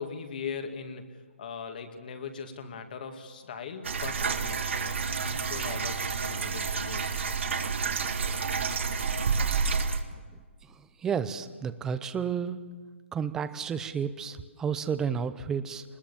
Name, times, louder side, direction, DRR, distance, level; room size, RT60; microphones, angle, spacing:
voice 1, 0.0-7.4, left 6 dB, 40° left, 6 dB, 2.3 m, -40 dB
sound 1, 3.8-10.0, right 5 dB, 65° right, 2.0 m, -29 dB
voice 2, 10.6-12.6 13.1-15.8, right 7 dB, 10° right, 13 dB, 0.6 m, -31 dB
23.5 x 21.0 x 7.2 m, 1.5 s
hypercardioid pair, 165°, 7 cm